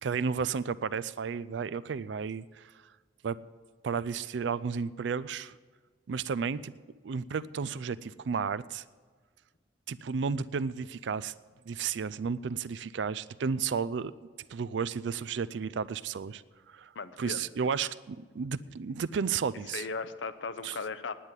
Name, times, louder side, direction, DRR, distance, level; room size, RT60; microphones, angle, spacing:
voice 1, 0.0-2.7 3.2-3.4 3.8-5.6 6.1-6.7 7.0-8.8 9.9-11.3 11.7-14.1 14.5-16.4 16.7-16.9 17.2-19.8 20.6-20.8, right 6 dB, 75° right, 16 dB, 0.4 m, -32 dB
voice 2, 16.9-17.5 19.7-21.1, left 4 dB, 80° left, 12 dB, 0.7 m, -37 dB
10.0 x 9.0 x 9.6 m, 1.5 s
head